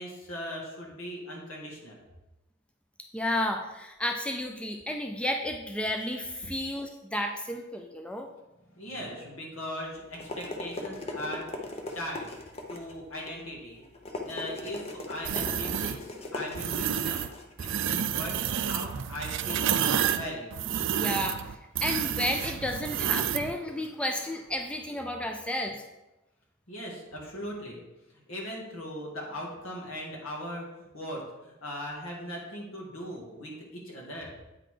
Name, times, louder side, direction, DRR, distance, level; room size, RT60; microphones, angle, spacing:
voice 1, 0.0-2.0 8.7-12.3 12.7-13.8 14.2-17.3 17.6-19.8 20.1-20.5 26.7-27.8 28.1-34.3, left 1 dB, 75° left, -2 dB, 2.1 m, -39 dB
voice 2, 3.1-8.3 20.9-21.4 21.8-25.8, left 1 dB, 5° left, 3 dB, 0.4 m, -32 dB
sound 1, 9.8-18.7, left 2 dB, 30° left, 0.8 m, -40 dB
sound 2, 15.2-16.0 16.5-17.3 17.6-23.5, right 9 dB, 60° right, 0.4 m, -29 dB
8.7 x 4.0 x 5.0 m, 0.99 s
head